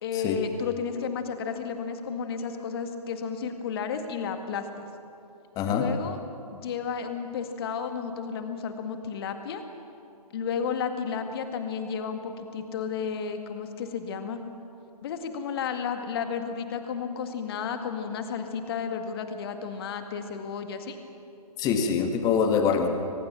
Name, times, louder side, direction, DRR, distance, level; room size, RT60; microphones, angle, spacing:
voice 1, 0.0-4.9 5.6-6.2 6.5-9.6 10.3-14.4 15.0-21.0 22.7-22.9, left 6 dB, 40° left, 7 dB, 2.0 m, -32 dB
voice 2, 5.6-5.9 21.6-22.9, left 6 dB, 20° left, 6 dB, 1.8 m, -24 dB
23.0 x 20.5 x 7.4 m, 2.7 s
figure-of-eight pair, 125°, 20 cm